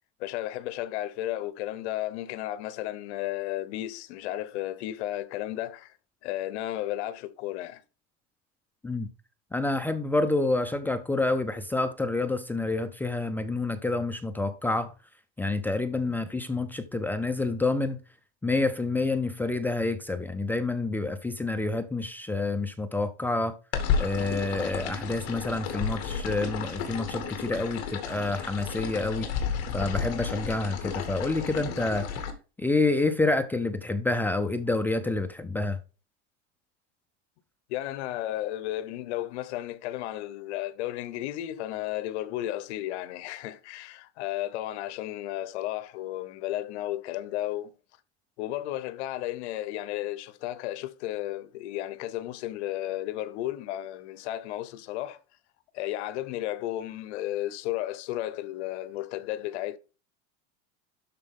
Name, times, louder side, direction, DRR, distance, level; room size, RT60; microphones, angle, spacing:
voice 1, 0.2-5.9 6.2-7.8 37.7-47.7 48.4-55.2 55.7-59.8, left 14 dB, 75° left, 1.0 m, -33 dB
voice 2, 9.5-14.9 15.4-18.0 18.4-23.5 24.0-29.3 29.7-32.1 32.6-35.8, left 2 dB, 5° left, 0.3 m, -28 dB
sound 1, 23.7-32.3, left 7 dB, 45° left, 2.2 m, -32 dB
12.0 x 4.4 x 3.7 m
supercardioid pair, 155°, 34 cm